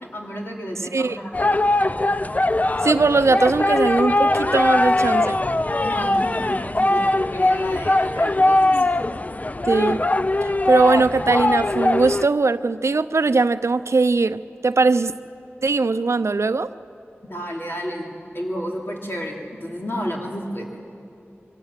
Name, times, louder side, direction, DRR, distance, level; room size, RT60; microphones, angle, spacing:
voice 1, 0.1-1.7 5.8-8.7 17.3-20.7, equal, 50° left, -1 dB, 3.1 m, -31 dB
sound 1, 1.3-12.2, left 2 dB, 35° left, 0.4 m, -21 dB
voice 2, 2.8-5.4 9.7-10.1 10.4-15.1 15.6-16.7, right 3 dB, 80° right, 13 dB, 0.5 m, -20 dB
23.5 x 16.5 x 7.5 m, 2.7 s
wide cardioid pair, 60°, 5 cm